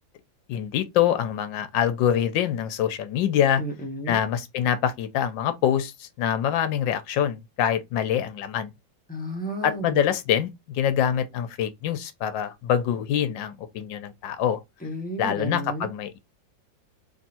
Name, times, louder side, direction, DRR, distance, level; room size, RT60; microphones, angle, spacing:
voice 1, 0.5-3.6 4.1-8.7 9.6-14.6 15.2-16.2, left 9 dB, 80° left, 1.4 m, -25 dB
voice 2, 3.6-4.2 9.1-10.0 14.8-15.9, right 1 dB, 5° left, 0.8 m, -32 dB
3.5 x 3.0 x 4.2 m
omnidirectional pair, 2.1 m